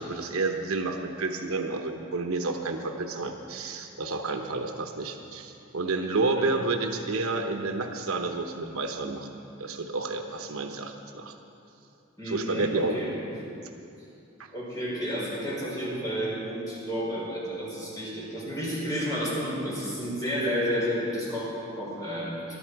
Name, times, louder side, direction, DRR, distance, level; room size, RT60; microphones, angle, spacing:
voice 1, 0.0-9.3 9.6-11.3 12.2-13.0, right 3 dB, 85° right, 4 dB, 0.9 m, -30 dB
voice 2, 12.2-13.1 14.5-22.6, equal, 15° left, -6 dB, 4.5 m, -31 dB
21.0 x 11.5 x 4.7 m, 2.7 s
head